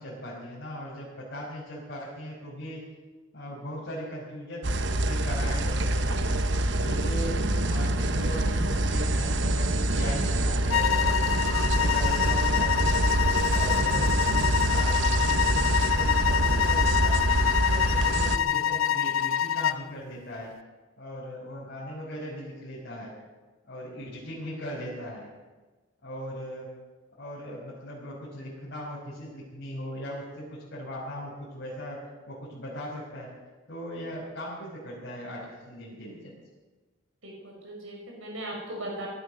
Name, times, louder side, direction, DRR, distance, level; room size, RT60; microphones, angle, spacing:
voice 1, 0.0-2.8 3.3-6.4 6.8-7.4 7.6-11.3 11.7-13.1 13.4-17.2 17.7-20.5 21.0-23.1 23.7-25.3 26.0-26.7 27.2-33.3 33.7-36.4, equal, 55° left, -8 dB, 5.2 m, -39 dB
sound 1, 4.6-18.4, right 1 dB, 60° right, 1.0 m, -26 dB
sound 2, 10.7-19.8, left 10 dB, 80° left, 0.5 m, -26 dB
voice 2, 37.2-39.1, right 1 dB, 85° right, -1 dB, 5.2 m, -38 dB
18.0 x 11.5 x 6.7 m, 1.3 s
head